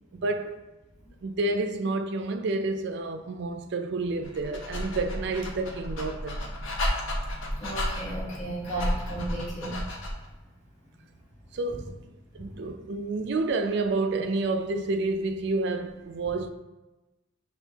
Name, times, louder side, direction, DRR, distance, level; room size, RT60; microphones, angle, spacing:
voice 1, 0.1-0.6 1.2-6.5 11.5-16.5, right 3 dB, 55° right, 0.4 m, -29 dB
Dog, 4.2-10.3, left 1 dB, 70° left, 0.8 m, -32 dB
voice 2, 7.6-9.8 12.3-12.4, right 1 dB, 35° left, 1.5 m, -34 dB
6.1 x 2.6 x 3.3 m
head